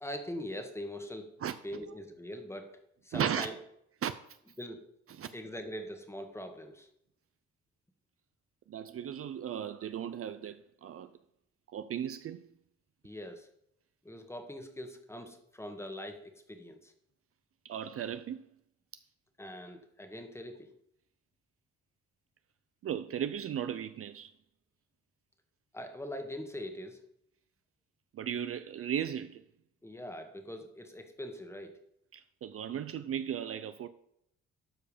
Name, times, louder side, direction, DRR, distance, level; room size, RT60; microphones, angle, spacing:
voice 1, 0.0-1.3 1.6-2.8 3.0-3.5 4.6-4.8 5.3-6.9 13.0-13.5 14.0-16.9 19.4-20.7 25.7-27.0 29.8-31.8, left 1 dB, 10° left, 1.5 m, -42 dB
voice 2, 3.1-3.5 4.0-4.1 5.1-5.3 8.7-11.1 11.7-12.4 17.6-18.5 22.8-24.3 28.1-29.4 32.1-33.9, right 9 dB, 50° right, 0.5 m, -36 dB
12.5 x 4.7 x 5.1 m
cardioid pair, 90°, 30 cm